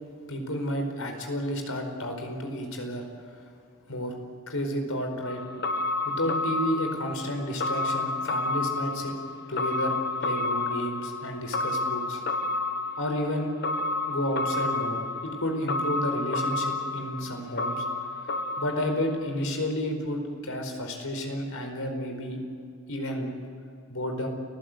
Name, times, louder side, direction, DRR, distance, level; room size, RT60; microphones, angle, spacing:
voice 1, 0.3-3.0 3.9-4.1 4.5-5.4 6.0-9.2 9.5-10.0 10.2-12.2 13.0-13.5 14.1-17.8 18.6-22.4 22.9-23.3 23.9-24.3, equal, 85° left, 4 dB, 4.7 m, -31 dB
sound 1, 5.2-19.4 19.7-19.8, left 2 dB, 50° left, 1.2 m, -30 dB
29.5 x 16.0 x 8.0 m, 2.4 s
head